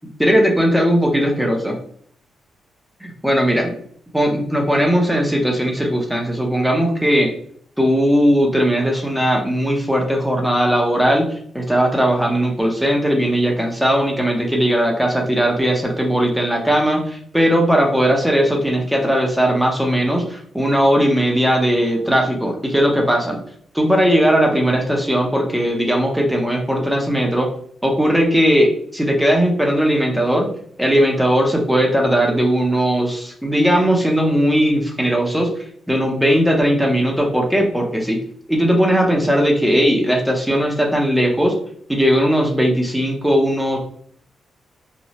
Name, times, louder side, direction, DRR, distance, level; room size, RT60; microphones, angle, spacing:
voice 1, 0.2-1.8 3.0-3.7 4.1-7.3 7.8-23.4 23.7-27.5 27.8-30.5 30.8-35.5 35.9-38.2 38.5-41.6 41.9-43.8, equal, 5° right, 1 dB, 0.6 m, -18 dB
2.9 x 2.0 x 2.8 m, 0.62 s
cardioid pair, 75°, 0 cm